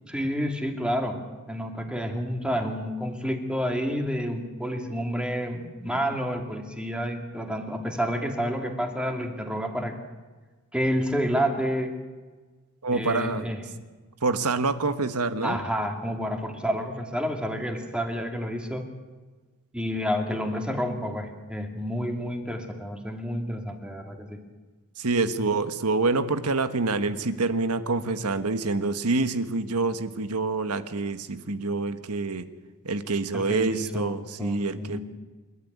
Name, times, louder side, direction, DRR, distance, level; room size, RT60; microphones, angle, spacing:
voice 1, 0.1-1.2 1.5-9.9 10.7-11.9 12.9-13.6 15.4-18.9 19.7-24.4 33.3-35.0, equal, 5° right, 4 dB, 2.4 m, -29 dB
voice 2, 12.8-13.5 14.2-15.6 25.0-32.5 32.8-35.0, right 3 dB, 90° right, 11 dB, 1.4 m, -26 dB
28.5 x 12.0 x 9.5 m, 1.3 s
head